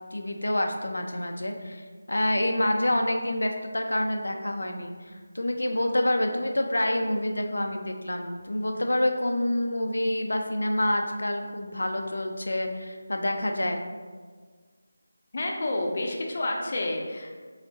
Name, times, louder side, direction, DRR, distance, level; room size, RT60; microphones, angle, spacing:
voice 1, 0.1-13.8, left 1 dB, 90° left, 4 dB, 0.5 m, -27 dB
voice 2, 15.3-17.3, left 2 dB, 40° left, 1 dB, 0.5 m, -29 dB
4.9 x 3.6 x 2.7 m, 1.5 s
figure-of-eight pair, 170°, 0 cm